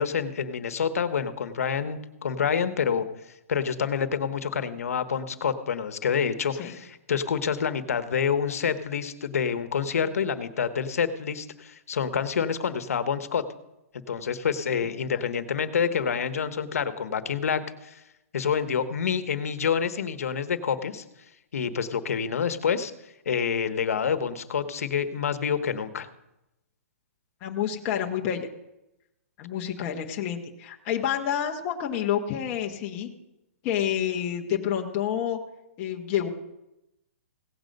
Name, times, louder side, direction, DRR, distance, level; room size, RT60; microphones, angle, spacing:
voice 1, 0.0-3.0 3.5-13.4 14.1-18.0 18.3-21.0 21.5-22.9 23.2-26.1, left 7 dB, 90° left, 11 dB, 1.0 m, -27 dB
voice 2, 27.4-28.5 29.4-33.1 33.6-35.4 35.8-36.3, left 9 dB, 25° left, 1 dB, 0.9 m, -28 dB
16.5 x 7.8 x 5.3 m, 0.90 s
hypercardioid pair, 170°, 8 cm